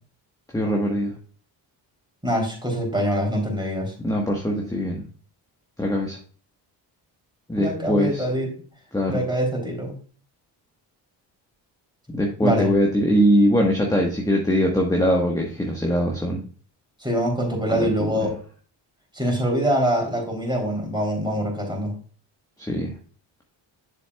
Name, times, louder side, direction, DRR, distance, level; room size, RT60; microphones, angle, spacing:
voice 1, 0.5-1.1 4.0-5.0 5.8-6.2 7.5-8.2 8.9-9.2 12.1-16.4 17.7-17.9 18.2-18.3 22.6-22.9, equal, 5° left, 0 dB, 1.3 m, -22 dB
voice 2, 2.2-3.9 7.6-8.5 9.1-9.9 12.4-12.7 17.0-18.4 19.1-21.9, equal, 10° right, 0 dB, 3.4 m, -24 dB
7.1 x 6.9 x 2.3 m, 0.42 s
supercardioid pair, 60°, 49 cm